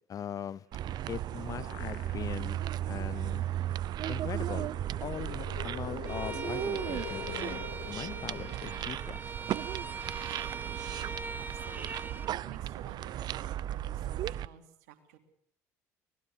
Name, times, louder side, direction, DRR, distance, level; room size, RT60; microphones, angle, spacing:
voice 1, 0.1-0.6 1.1-2.6 2.9-3.4 4.1-4.7 5.0-9.2, left 9 dB, 45° left, 0.8 m, -40 dB
sound 1, 0.7-14.5, right 12 dB, 60° right, 0.8 m, -36 dB
sound 2, 1.0-2.6 3.1-3.2 4.4-9.2, left 10 dB, 80° left, 2.2 m, -45 dB
Bowed string instrument, 6.1-12.3, right 4 dB, 25° right, 1.9 m, -42 dB
voice 2, 11.4-15.2, right 10 dB, 85° right, 3.1 m, -52 dB
25.0 x 20.0 x 6.3 m
hypercardioid pair, 70°, 8 cm